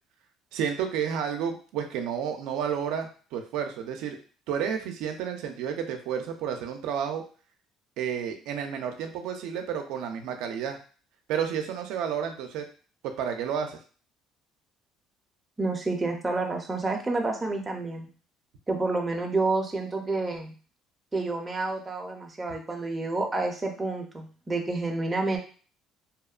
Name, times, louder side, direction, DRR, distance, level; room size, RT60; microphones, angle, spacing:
voice 1, 0.5-4.2 4.5-7.2 8.0-10.8 11.3-12.6 13.0-13.8, right 8 dB, 80° right, 5 dB, 0.3 m, -31 dB
voice 2, 15.6-18.1 18.7-20.5 21.1-25.4, right 3 dB, 15° right, 1 dB, 0.4 m, -29 dB
2.8 x 2.1 x 2.3 m, 0.39 s
cardioid pair, 130°, 0 cm